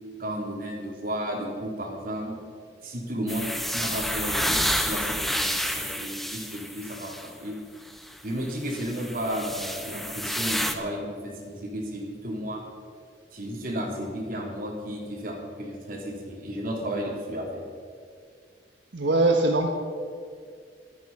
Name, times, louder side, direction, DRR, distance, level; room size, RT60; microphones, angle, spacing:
voice 1, 0.2-2.4 2.8-7.5 8.2-12.6 13.3-17.6, equal, 50° right, 0 dB, 3.5 m, -33 dB
sound 1, 3.3-7.3 7.9-8.0 8.7-10.7, equal, ahead, 1.0 m, -29 dB
voice 2, 18.9-19.7, right 2 dB, 85° right, 2 dB, 1.3 m, -21 dB
25.0 x 9.1 x 5.5 m, 2.2 s
head